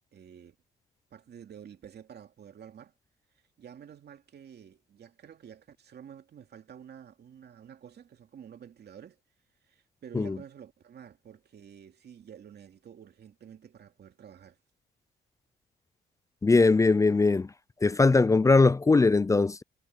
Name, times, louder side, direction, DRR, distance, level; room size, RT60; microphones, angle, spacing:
voice 1, 0.1-0.6 1.1-2.9 3.6-9.2 9.7-14.6, right 8 dB, 55° right, 2.6 m, -50 dB
voice 2, 16.4-17.5 17.8-19.6, left 3 dB, 15° left, 0.3 m, -21 dB
cardioid pair, 90°, 20 cm